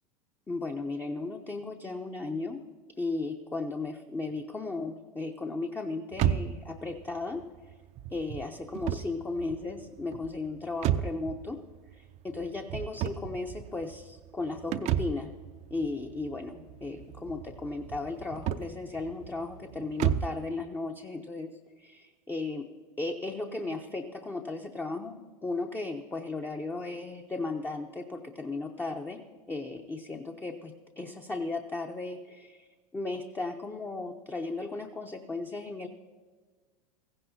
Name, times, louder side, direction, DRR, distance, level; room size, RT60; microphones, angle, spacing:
voice 1, 0.5-2.6 3.0-7.4 8.1-11.6 11.9-15.3 15.7-21.5 21.8-22.7 23.0-29.2 29.5-32.7 32.9-35.9, left 3 dB, 10° left, 3 dB, 0.6 m, -35 dB
sound 1, 6.1-20.5, right 11 dB, 35° right, 0.5 m, -34 dB
16.0 x 15.0 x 2.8 m, 1.4 s
hypercardioid pair, 110°, 20 cm